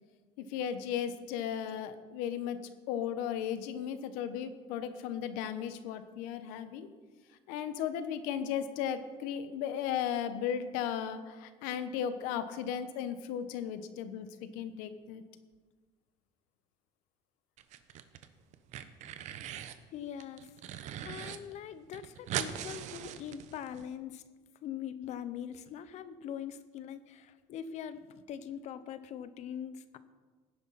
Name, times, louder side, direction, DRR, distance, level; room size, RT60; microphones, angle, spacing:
voice 1, 0.4-2.6 2.9-6.9 7.5-14.3 14.5-15.2, left 9 dB, 85° left, 10 dB, 1.1 m, -35 dB
sound 1, 17.6-18.3 18.5-19.8 20.2-21.4 21.6-21.7 21.9-23.8, right 10 dB, 60° right, 0.9 m, -40 dB
voice 2, 19.9-20.5 21.0-24.2 24.6-30.0, left 9 dB, 55° left, 13 dB, 0.9 m, -42 dB
17.0 x 10.0 x 4.2 m, 1.4 s
cardioid pair, 120°, 14 cm